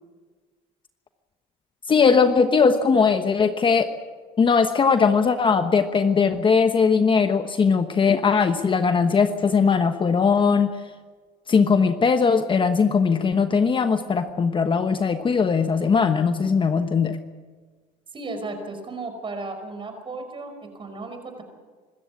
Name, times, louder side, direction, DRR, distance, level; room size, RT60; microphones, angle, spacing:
voice 1, 1.9-3.9 4.4-10.7 11.5-17.2, left 5 dB, 25° left, 8 dB, 1.2 m, -20 dB
voice 2, 18.1-21.4, right 3 dB, 30° right, 7 dB, 5.1 m, -34 dB
25.5 x 14.0 x 8.4 m, 1.4 s
supercardioid pair, 105°, 18 cm